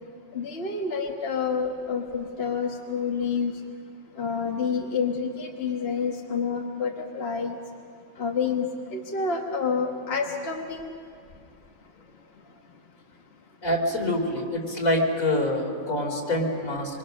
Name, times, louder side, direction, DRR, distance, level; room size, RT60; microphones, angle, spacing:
voice 1, 0.3-3.6 4.1-7.6 8.2-10.9 11.3-11.4 11.8-12.8 13.1-13.4 16.9-17.0, left 5 dB, 45° left, 1 dB, 1.6 m, -29 dB
voice 2, 13.6-17.0, left 1 dB, 75° left, 0 dB, 3.9 m, -26 dB
25.5 x 25.0 x 6.5 m, 2.5 s
omnidirectional pair, 1.4 m